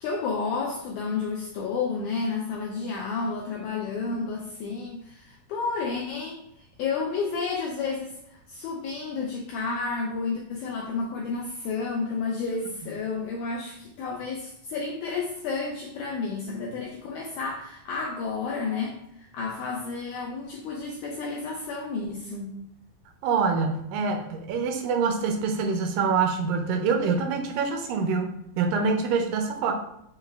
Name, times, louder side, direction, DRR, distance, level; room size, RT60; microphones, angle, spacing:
voice 1, 0.0-8.2 8.5-22.5, left 4 dB, 90° left, -1 dB, 1.7 m, -31 dB
voice 2, 23.2-28.3 28.6-29.7, right 5 dB, 80° right, 4 dB, 2.1 m, -25 dB
5.6 x 2.2 x 3.2 m, 0.76 s
omnidirectional pair, 3.9 m